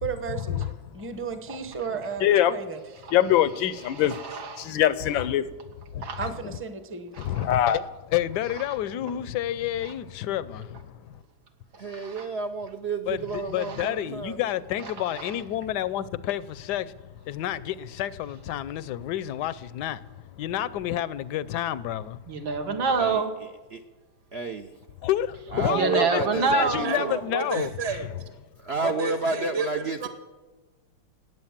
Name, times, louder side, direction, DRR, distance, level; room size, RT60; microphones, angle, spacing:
voice 1, 0.0-0.7 0.9-2.8 6.2-7.1, right 5 dB, 10° right, 0.7 m, -34 dB
voice 2, 2.2-2.5 3.1-4.2 4.6-5.4 7.4-7.8, left 11 dB, 85° left, 1.5 m, -22 dB
voice 3, 3.8-4.7 6.0-6.2 7.2-7.3 11.9-12.2 13.8-13.9 15.2-15.3 22.3-23.3 25.7-27.2, right 4 dB, 85° right, 2.4 m, -27 dB
voice 4, 7.2-11.2 13.1-22.2 25.0-26.2 26.5-27.7, left 12 dB, 70° left, 1.1 m, -30 dB
voice 5, 11.8-14.5 23.0-23.2 23.7-23.8 24.3-24.7 25.5-27.1 27.5-27.7 28.6-30.1, right 4 dB, 65° right, 0.6 m, -30 dB
voice 6, 26.8-28.1 28.8-30.1, right 4 dB, 40° right, 1.2 m, -31 dB
19.0 x 8.1 x 7.3 m
omnidirectional pair, 2.1 m